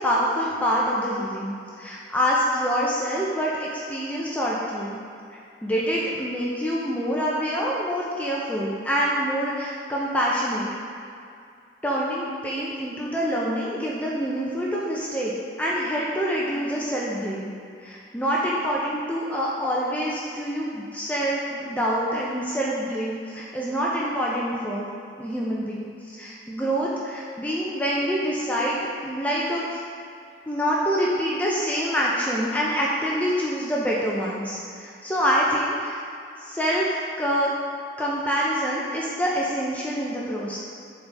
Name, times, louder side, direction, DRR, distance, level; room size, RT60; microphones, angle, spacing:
voice 1, 0.0-5.0 5.6-10.7 11.8-15.3 15.6-17.5 17.8-24.9 25.2-29.8 30.5-36.0 36.4-37.5 38.0-40.6, equal, 10° left, -5 dB, 0.6 m, -26 dB
10.5 x 4.1 x 3.5 m, 2.4 s
head